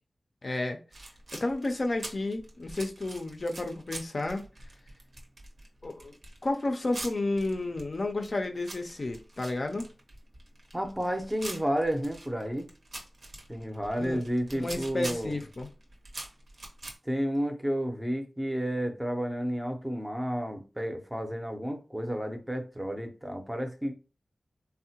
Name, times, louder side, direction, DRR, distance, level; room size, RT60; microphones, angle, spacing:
voice 1, 0.4-0.8 1.3-4.4 5.8-6.1 6.4-9.9 14.0-14.3 14.5-15.7, left 2 dB, 50° left, 0.4 m, -31 dB
sound 1, 0.9-17.0, right 2 dB, 75° right, 0.7 m, -44 dB
voice 2, 10.7-12.7 13.5-15.3 17.1-23.9, equal, 10° right, 0.5 m, -31 dB
3.5 x 2.1 x 2.8 m
wide cardioid pair, 80°, 0 cm